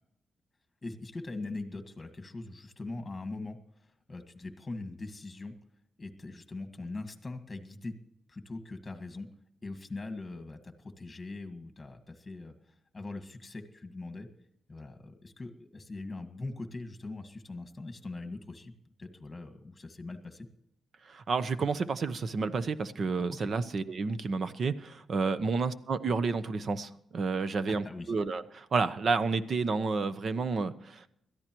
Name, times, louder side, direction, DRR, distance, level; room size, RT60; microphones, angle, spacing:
voice 1, 0.8-5.5 6.0-8.0 8.3-9.3 9.6-12.5 12.9-14.3 14.7-18.7 19.0-20.5 23.4-23.5 25.4-25.5 27.7-28.1, left 2 dB, 20° left, 7 dB, 1.7 m, -41 dB
voice 2, 21.1-31.1, right 4 dB, 45° right, 13 dB, 0.9 m, -30 dB
21.5 x 14.0 x 3.1 m, 0.77 s
cardioid pair, 125°, 0 cm